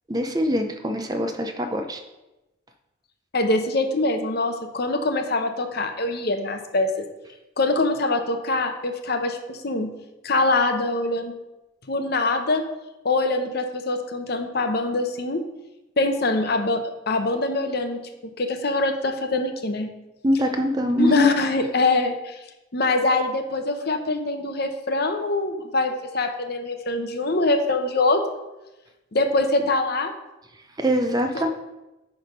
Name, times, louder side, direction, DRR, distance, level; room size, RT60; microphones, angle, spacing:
voice 1, 0.1-2.0 20.2-21.3 30.8-31.5, equal, 20° right, 5 dB, 0.5 m, -23 dB
voice 2, 3.3-6.9 7.6-9.9 10.2-11.4 11.9-12.6 13.0-15.4 16.0-18.0 18.4-19.9 21.0-22.4 22.7-28.2 29.1-30.1 31.3-31.5, left 2 dB, 50° left, 6 dB, 0.7 m, -23 dB
10.0 x 3.4 x 5.1 m, 1.0 s
head